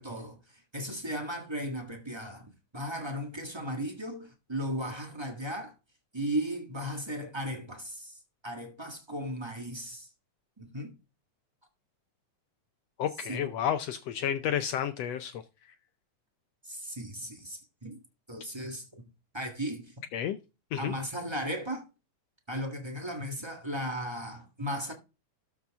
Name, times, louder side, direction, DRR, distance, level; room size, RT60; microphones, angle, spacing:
voice 1, 0.0-5.7 6.1-8.2 8.4-10.1 10.6-10.9 13.3-13.5 16.6-18.0 18.3-18.9 19.3-19.9 20.8-21.8 22.5-24.9, equal, 30° right, 0.4 m, -36 dB
voice 2, 13.0-15.4 20.1-20.4 20.7-20.9, left 9 dB, 75° left, 1.5 m, -31 dB
13.0 x 5.9 x 3.5 m
omnidirectional pair, 3.5 m